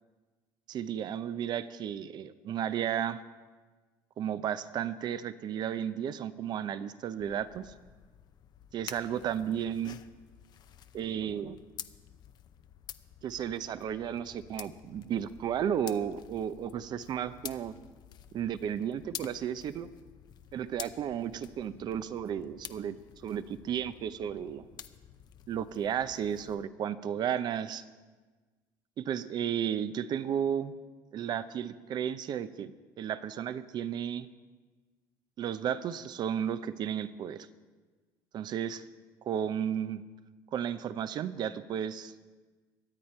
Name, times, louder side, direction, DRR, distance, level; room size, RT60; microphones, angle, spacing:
voice 1, 0.7-3.2 4.2-7.7 8.7-10.0 10.9-11.6 13.2-17.8 18.3-19.9 20.5-23.0 23.2-24.7 25.5-27.8 29.0-30.7 31.1-32.7 33.0-34.3 35.4-37.5 38.3-38.8 39.2-40.0 40.5-42.1, right 9 dB, 55° right, 13 dB, 0.7 m, -33 dB
sound 1, 7.2-26.6, left 10 dB, 55° left, 0.6 m, -49 dB
23.5 x 8.7 x 4.4 m, 1.3 s
supercardioid pair, 95°, 9 cm